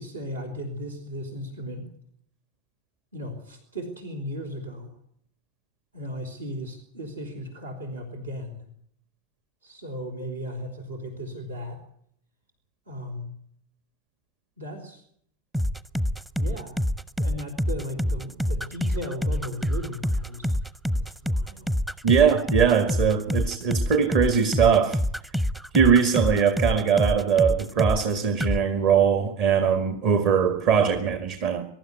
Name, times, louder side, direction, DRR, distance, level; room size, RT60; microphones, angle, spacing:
voice 1, 0.0-1.9 3.1-5.0 5.9-8.6 9.6-11.8 12.9-13.4 14.6-15.0 16.3-16.8 17.2-20.5 21.0-21.7, equal, 75° right, 4 dB, 3.9 m, -36 dB
sound 1, 15.5-28.1 28.4-28.6, equal, 5° right, 0.7 m, -26 dB
voice 2, 22.0-25.0 25.7-31.7, right 7 dB, 45° right, 10 dB, 1.7 m, -21 dB
22.5 x 12.5 x 9.6 m, 0.69 s
figure-of-eight pair, 90°, 0 cm